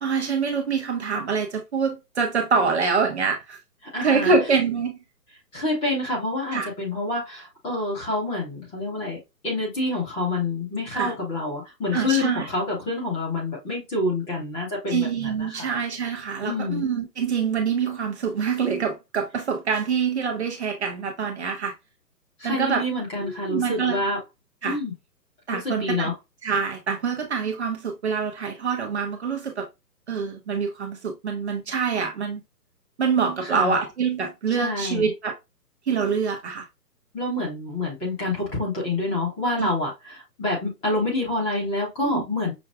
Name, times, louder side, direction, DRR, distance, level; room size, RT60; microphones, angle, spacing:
voice 1, 0.0-3.6 4.0-5.0 6.5-6.7 10.9-11.1 11.9-12.5 14.9-21.7 22.4-22.8 23.2-24.0 24.6-24.8 25.5-26.1 26.4-29.7 30.1-32.4 33.0-35.4 35.9-36.7 39.6-39.7 42.0-42.2, right 5 dB, 40° right, 0.8 m, -25 dB
voice 2, 3.9-4.3 5.5-9.2 9.4-15.7 16.4-16.8 22.4-24.2 24.6-24.9 25.5-26.1 33.4-33.7 34.5-35.1 37.1-42.5, left 2 dB, 10° left, 1.2 m, -27 dB
6.0 x 2.3 x 2.2 m
figure-of-eight pair, 140°, 49 cm